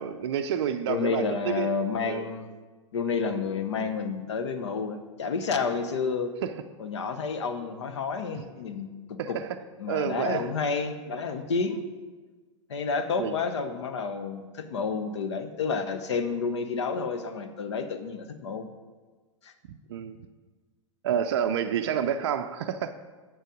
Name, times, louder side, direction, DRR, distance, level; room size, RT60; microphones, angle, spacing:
voice 1, 0.0-1.7 2.0-2.2 6.4-6.6 9.2-9.6 9.9-10.5 13.2-13.4 19.7-20.2 21.0-22.9, right 8 dB, 55° right, 7 dB, 0.4 m, -29 dB
voice 2, 0.9-2.5 2.9-6.3 6.8-9.4 9.8-11.8 12.7-18.7 19.4-19.5, left 5 dB, 60° left, 8 dB, 0.8 m, -30 dB
9.0 x 6.2 x 5.0 m, 1.4 s
figure-of-eight pair, 95°, 16 cm